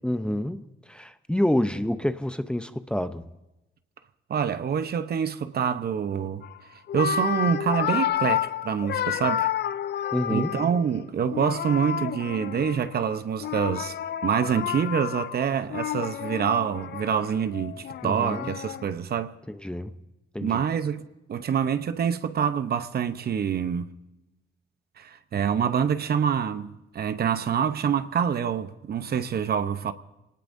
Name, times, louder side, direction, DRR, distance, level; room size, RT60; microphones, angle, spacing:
voice 1, 0.0-3.3 10.1-10.5 18.0-18.5 19.5-19.9 20.3-20.6, left 1 dB, 5° left, 0.7 m, -28 dB
voice 2, 4.3-6.4 6.9-9.5 10.3-13.9 14.2-19.3 20.4-23.9 25.0-29.9, right 7 dB, 55° right, 0.9 m, -26 dB
sound 1, 6.4-6.6 6.9-10.9 11.3-13.0 13.4-18.8, left 10 dB, 60° left, 0.5 m, -30 dB
25.0 x 19.0 x 2.7 m
cardioid pair, 90°, 20 cm